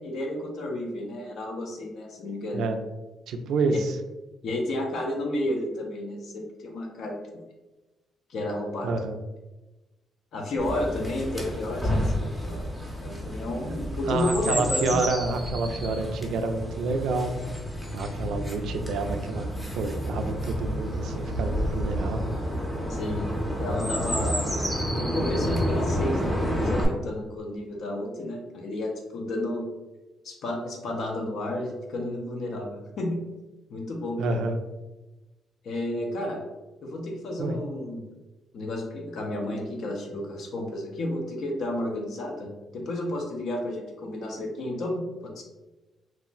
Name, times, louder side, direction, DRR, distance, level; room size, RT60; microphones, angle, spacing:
voice 1, 0.0-2.7 3.7-3.8 4.4-7.4 8.3-9.0 10.3-12.7 13.0-15.0 22.9-23.3 23.6-24.6 24.9-29.7 30.2-33.2 33.7-34.4 35.6-36.4 36.8-38.0 38.5-45.4, left 1 dB, 65° left, 0 dB, 0.5 m, -31 dB
voice 2, 3.3-4.0 8.8-9.2 14.1-17.5 17.9-19.5 19.8-22.3 34.2-34.6 37.4-37.6, right 3 dB, 80° right, 6 dB, 0.3 m, -28 dB
Chirp tweet, 10.6-26.8, equal, 5° left, 0.6 m, -30 dB
2.4 x 2.1 x 3.7 m, 1.1 s
cardioid pair, 130°, 0 cm